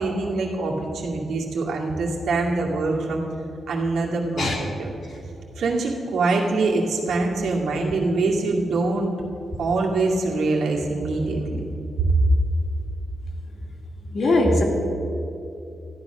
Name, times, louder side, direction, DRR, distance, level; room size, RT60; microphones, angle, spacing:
voice 1, 0.0-3.2 3.7-4.9 5.6-9.1 9.6-11.6 12.0-12.1, right 3 dB, 80° right, -1 dB, 2.2 m, -24 dB
voice 2, 14.1-14.6, left 2 dB, 45° left, 1 dB, 2.0 m, -20 dB
13.5 x 10.5 x 6.1 m, 2.8 s
wide cardioid pair, 175°, 0 cm